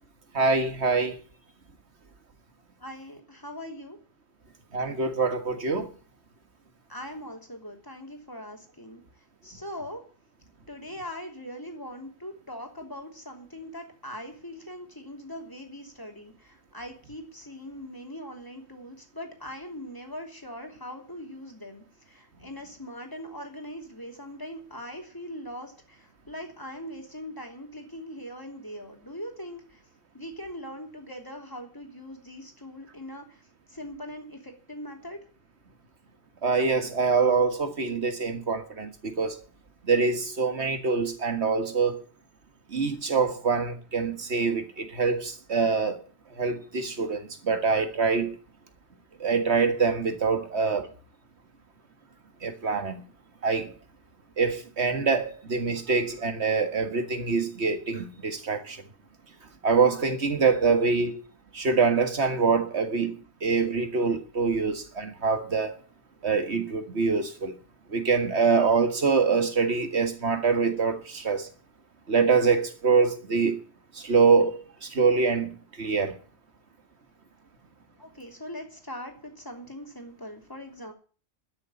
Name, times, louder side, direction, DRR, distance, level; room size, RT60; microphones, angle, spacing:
voice 1, 0.3-1.2 4.7-5.9 36.4-39.4 39.8-42.0 42.7-46.0 46.4-48.3 49.2-50.9 52.4-53.0 53.4-53.7 54.4-58.8 59.6-61.2 61.5-63.2 63.4-65.8 66.2-67.5 67.9-71.5 72.1-73.6 74.0-76.1, right 4 dB, 90° right, 2.0 m, -25 dB
voice 2, 2.8-4.0 6.9-9.0 9.4-10.0 10.7-29.8 30.1-33.4 33.7-35.2 78.0-80.9, equal, 20° left, 3.2 m, -41 dB
12.5 x 6.9 x 9.8 m
omnidirectional pair, 1.1 m